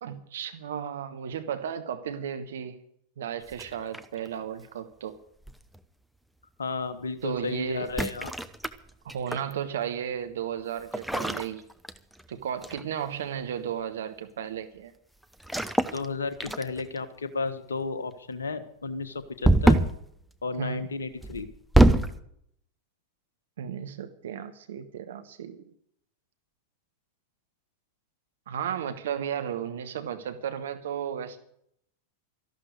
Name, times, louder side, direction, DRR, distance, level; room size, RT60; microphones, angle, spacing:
voice 1, 0.0-2.8 3.2-5.1 7.2-7.9 9.0-11.6 12.3-14.9 20.6-20.9 23.6-25.6 28.5-31.4, right 8 dB, 60° right, 10 dB, 1.2 m, -34 dB
sound 1, 3.5-4.3 5.5-5.8 7.8-9.5 10.9-12.3 12.6-12.9 15.4-16.1 16.4-17.0 19.4-20.0 21.2-22.2, right 1 dB, ahead, 0.9 m, -24 dB
voice 2, 6.6-8.3 15.8-19.8 20.4-21.5, left 4 dB, 70° left, 11 dB, 1.4 m, -33 dB
13.5 x 12.0 x 6.6 m, 0.70 s
figure-of-eight pair, 90°, 0 cm